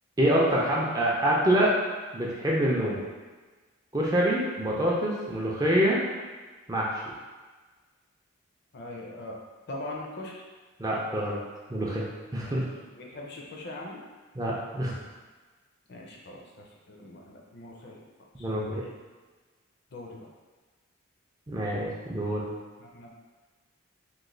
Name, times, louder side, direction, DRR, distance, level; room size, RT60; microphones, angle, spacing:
voice 1, 0.2-1.8 2.1-3.0 3.9-6.0 6.7-7.0 10.8-11.4 11.7-12.7 14.4-15.0 18.4-18.8 21.5-22.5, equal, 15° right, -4 dB, 0.4 m, -26 dB
voice 2, 8.7-9.4 9.7-10.4 12.4-12.6 12.9-14.0 15.9-18.0 18.4-18.5 19.9-20.3 22.8-23.1, left 1 dB, 50° left, -1 dB, 0.5 m, -41 dB
3.0 x 2.2 x 3.8 m, 1.3 s
head